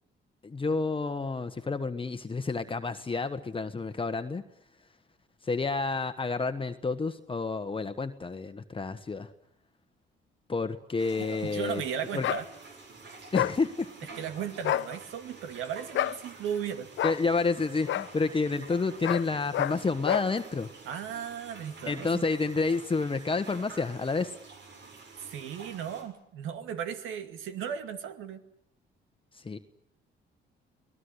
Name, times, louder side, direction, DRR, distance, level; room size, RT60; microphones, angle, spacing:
voice 1, 0.4-4.4 5.4-9.3 10.5-11.8 12.1-12.3 13.3-13.9 17.0-20.7 21.9-24.3 29.4-29.6, left 4 dB, 25° left, 8 dB, 1.3 m, -29 dB
sound 1, 11.0-26.0, right 3 dB, 65° right, 7.3 m, -49 dB
voice 2, 11.2-12.5 14.2-16.9 20.8-22.3 25.2-28.4, right 8 dB, 90° right, 9 dB, 2.4 m, -36 dB
sound 2, 12.2-12.4 13.3-13.6 14.6-14.9 15.9-16.2 17.0-17.2 17.9-18.1 19.0-19.3 19.5-19.8 20.0-20.3, left 12 dB, 70° left, 1.0 m, -28 dB
25.0 x 18.5 x 9.9 m, 0.71 s
cardioid pair, 90°, 20 cm